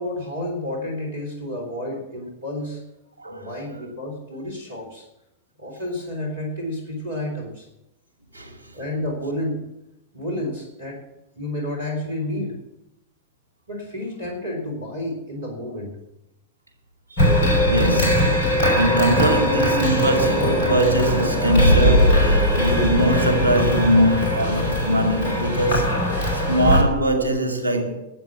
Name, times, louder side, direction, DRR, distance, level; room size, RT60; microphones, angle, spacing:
voice 1, 0.0-2.8 3.3-5.0 5.6-7.7 8.7-9.6 10.1-11.0 11.3-12.5 13.7-15.9, left 1 dB, 70° right, 3.4 m, -30 dB
voice 2, 3.2-3.8 8.3-8.6 17.1-18.5 18.7-28.1, right 1 dB, 90° left, 2.1 m, -22 dB
sound 1, 17.2-26.8, equal, 50° left, 5.2 m, -20 dB
12.0 x 8.0 x 7.2 m
figure-of-eight pair, 90°, 0 cm